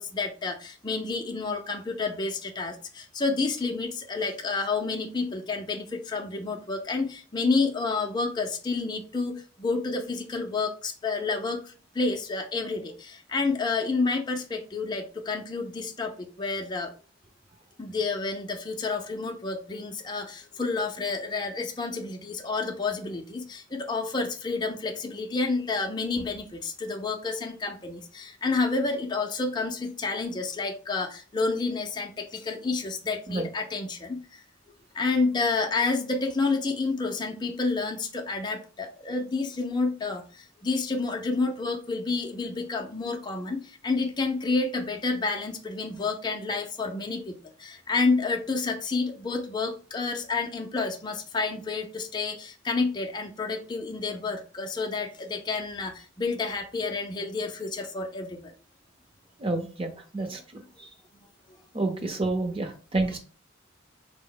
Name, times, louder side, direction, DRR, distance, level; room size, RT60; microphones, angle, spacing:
voice 1, 0.0-16.9 17.8-34.4 34.9-47.3 47.6-58.5, left 3 dB, 20° left, 2 dB, 0.4 m, -29 dB
voice 2, 59.4-60.4 60.8-60.9 61.7-63.2, right 2 dB, 30° right, 5 dB, 0.7 m, -29 dB
4.4 x 2.1 x 3.8 m, 0.38 s
head